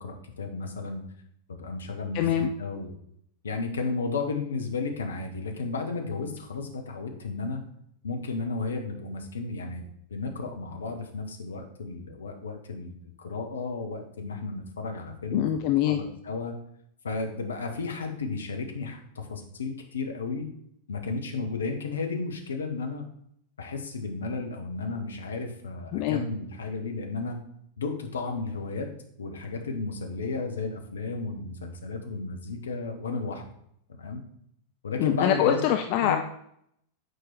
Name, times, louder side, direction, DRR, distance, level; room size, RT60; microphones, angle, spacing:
voice 1, 0.0-1.0 1.5-2.9 3.4-7.6 8.0-15.5 15.9-16.5 17.0-20.5 20.9-23.0 23.6-27.4 27.8-28.9 29.2-33.4 33.9-34.2 34.8-35.6 36.0-36.2, left 4 dB, 70° left, 4 dB, 1.0 m, -33 dB
voice 2, 2.1-2.5 15.3-16.0 25.9-26.2 35.0-36.2, left 11 dB, 45° left, 6 dB, 0.4 m, -24 dB
6.4 x 4.7 x 4.4 m, 0.71 s
figure-of-eight pair, 90°, 0 cm